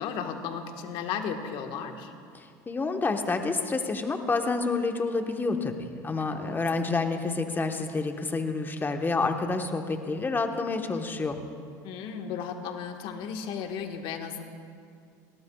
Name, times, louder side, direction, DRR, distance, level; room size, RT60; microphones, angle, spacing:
voice 1, 0.0-2.1 6.3-6.6 11.8-14.4, left 7 dB, 60° left, 5 dB, 1.5 m, -35 dB
voice 2, 2.3-11.4, left 3 dB, 20° left, 5 dB, 1.2 m, -29 dB
21.0 x 18.5 x 2.4 m, 2.3 s
supercardioid pair, 90°, 10 cm